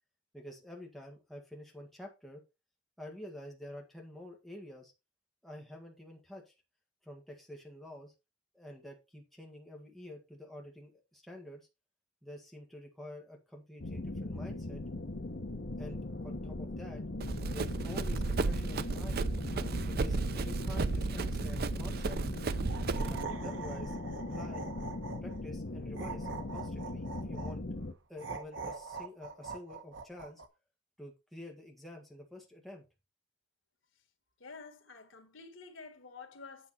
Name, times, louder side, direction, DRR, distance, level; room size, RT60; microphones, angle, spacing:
voice 1, 0.3-2.4 3.0-4.9 5.4-6.5 7.0-8.1 8.5-11.7 12.2-14.8 15.8-17.0 17.5-19.3 19.8-22.2 22.9-24.7 25.2-27.6 28.1-30.4 31.0-32.9, left 1 dB, ahead, 1.8 m, -48 dB
sound 1, 13.8-27.9, left 2 dB, 60° left, 1.0 m, -40 dB
Run, 17.2-23.2, right 3 dB, 55° right, 0.6 m, -33 dB
sound 2, 22.6-25.4 25.9-27.5 28.2-30.5, right 4 dB, 75° right, 1.1 m, -43 dB
voice 2, 34.4-36.7, left 4 dB, 85° left, 1.8 m, -50 dB
8.8 x 6.0 x 4.2 m
head